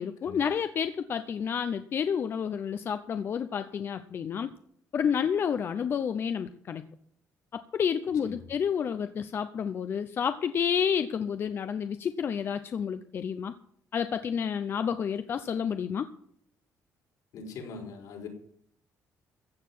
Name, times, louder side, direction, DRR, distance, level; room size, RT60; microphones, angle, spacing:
voice 1, 0.0-4.5 4.9-6.8 7.5-13.5 13.9-16.1, left 7 dB, 40° left, 10 dB, 0.7 m, -30 dB
voice 2, 17.3-18.3, left 4 dB, 80° left, 1 dB, 4.9 m, -41 dB
15.5 x 6.6 x 9.5 m, 0.65 s
cardioid pair, 145°, 6 cm